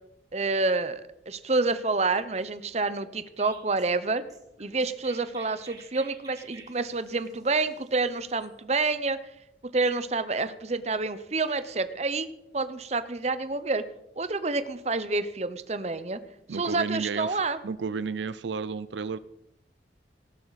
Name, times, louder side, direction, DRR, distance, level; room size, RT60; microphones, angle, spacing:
voice 1, 0.3-4.2 4.6-9.2 9.6-12.3 12.5-13.8 14.2-16.2 16.5-17.6, right 3 dB, 35° right, 13 dB, 0.8 m, -28 dB
Chirp tweet, 3.4-8.5, right 4 dB, 20° right, 1.9 m, -51 dB
voice 2, 16.5-19.2, right 5 dB, 80° right, 15 dB, 0.5 m, -32 dB
18.0 x 12.0 x 4.1 m, 0.83 s
head